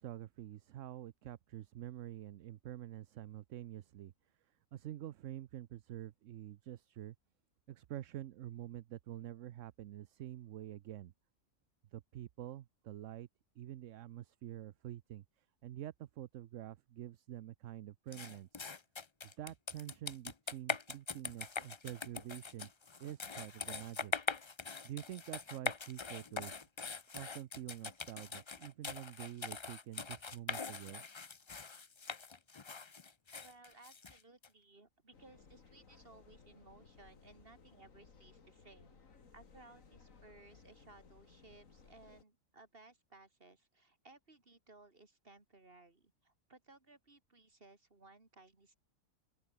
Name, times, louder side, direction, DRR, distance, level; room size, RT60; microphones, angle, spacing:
voice 1, 0.0-4.1 4.7-7.1 7.7-11.1 11.9-13.3 13.6-15.2 15.6-18.7 19.4-22.7 23.0-24.1 24.8-26.7 27.1-31.0, right 12 dB, 70° right, 1.0 m, -47 dB
sound 1, 18.1-34.5, left 4 dB, 30° left, 0.6 m, -42 dB
voice 2, 33.4-39.0 39.3-48.8, right 3 dB, 45° right, 3.4 m, -61 dB
sound 2, 35.1-42.2, left 5 dB, 75° left, 2.5 m, -61 dB
open air
omnidirectional pair, 1.4 m